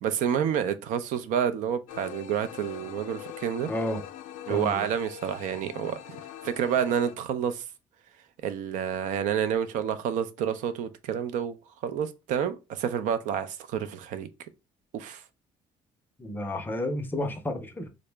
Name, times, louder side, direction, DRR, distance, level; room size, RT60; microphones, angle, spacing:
voice 1, 0.0-3.7 4.5-6.0 6.4-7.6 8.4-11.6 11.8-14.3 14.9-15.2, right 8 dB, 80° right, 0.4 m, -29 dB
sound 1, 1.9-7.2, left 11 dB, 75° left, 0.4 m, -43 dB
voice 2, 3.7-4.0 4.5-4.9 16.2-18.0, left 1 dB, 15° left, 0.5 m, -31 dB
3.7 x 2.0 x 3.3 m
cardioid pair, 145°, 13 cm